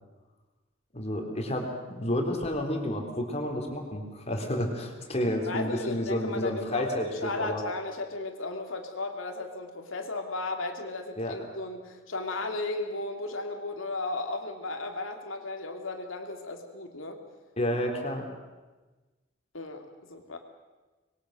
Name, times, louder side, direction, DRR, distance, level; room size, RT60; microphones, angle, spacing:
voice 1, 0.9-7.6 11.2-11.4 17.6-18.3, left 1 dB, 30° left, 3 dB, 3.6 m, -30 dB
voice 2, 5.2-17.2 17.7-17.8 19.5-20.4, left 2 dB, 75° left, 4 dB, 3.0 m, -35 dB
26.0 x 22.0 x 6.6 m, 1.2 s
head